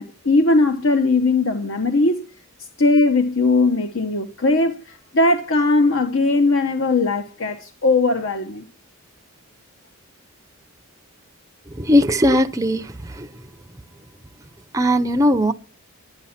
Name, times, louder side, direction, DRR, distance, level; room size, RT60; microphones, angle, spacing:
voice 1, 0.0-2.2 2.8-8.6, left 3 dB, 60° left, 1.0 m, -19 dB
voice 2, 11.9-12.8 14.7-15.5, equal, 15° right, 0.5 m, -17 dB
10.5 x 10.0 x 5.8 m
head